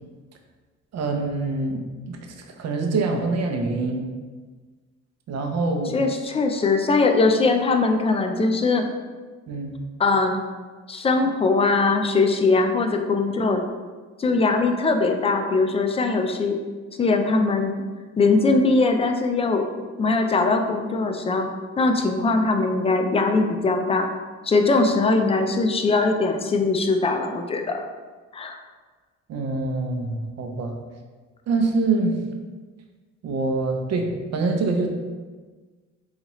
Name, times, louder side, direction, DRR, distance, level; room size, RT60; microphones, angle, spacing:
voice 1, 0.9-2.2 2.6-4.1 5.3-6.0 9.5-9.7 29.3-30.7 31.5-32.2 33.2-34.9, right 3 dB, 60° right, 3 dB, 0.6 m, -25 dB
voice 2, 5.9-8.9 10.0-10.4 10.9-13.6 14.2-16.6 17.0-17.7 18.2-19.6 20.0-21.5 21.8-24.1 24.4-27.9 28.3-28.6, left 3 dB, 20° left, 5 dB, 0.3 m, -21 dB
4.0 x 2.4 x 3.0 m, 1.4 s
cardioid pair, 90°, 30 cm